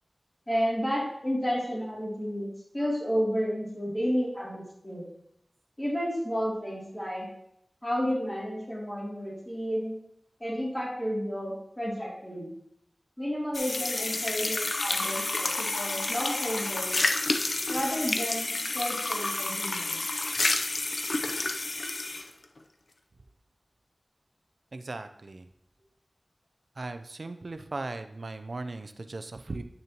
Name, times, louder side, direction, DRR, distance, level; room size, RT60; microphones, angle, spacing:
voice 1, 0.5-5.1 5.8-7.3 7.8-9.9 10.4-12.5 13.2-17.0 17.7-20.0, equal, 15° left, -6 dB, 3.0 m, -31 dB
sound 1, 13.5-22.3, left 2 dB, 70° left, 0.7 m, -30 dB
voice 2, 24.7-25.5 26.8-29.6, right 2 dB, 65° right, 9 dB, 0.6 m, -38 dB
8.7 x 6.5 x 3.0 m, 0.74 s
wide cardioid pair, 55°, 0 cm